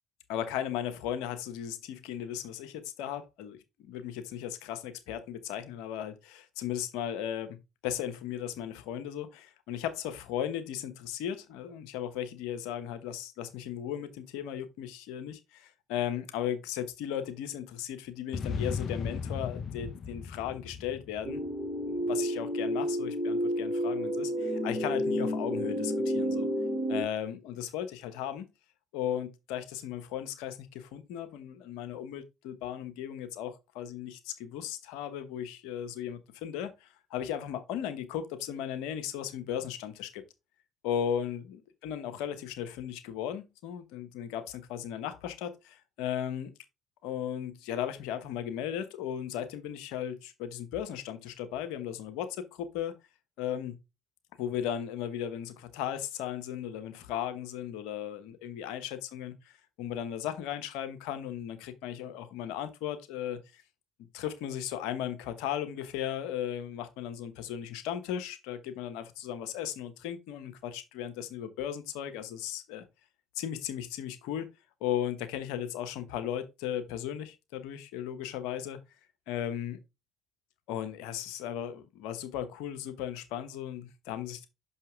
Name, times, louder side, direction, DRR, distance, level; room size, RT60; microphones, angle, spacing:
voice 1, 0.3-7.6 7.8-21.4 21.9-26.5 26.9-28.5 28.9-40.2 40.8-46.5 47.0-53.0 53.4-53.8 54.4-59.3 59.8-63.6 64.1-72.9 73.3-74.5 74.8-78.8 79.3-79.8 80.7-84.5, left 10 dB, 75° left, 1.1 m, -36 dB
sound 1, 18.3-21.8, left 6 dB, 50° left, 0.8 m, -36 dB
sound 2, 21.2-27.0, equal, 20° right, 2.6 m, -30 dB
5.9 x 5.6 x 3.5 m
hypercardioid pair, 60°, 0 cm